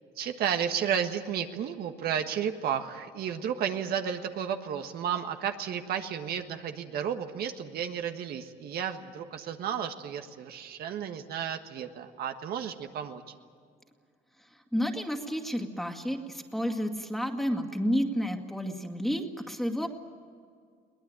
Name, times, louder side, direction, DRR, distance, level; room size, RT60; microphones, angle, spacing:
voice 1, 0.2-13.2, right 8 dB, 65° right, 6 dB, 1.5 m, -32 dB
voice 2, 14.5-19.9, equal, ahead, 4 dB, 2.2 m, -31 dB
22.5 x 19.0 x 9.0 m, 2.1 s
cardioid pair, 110°, 17 cm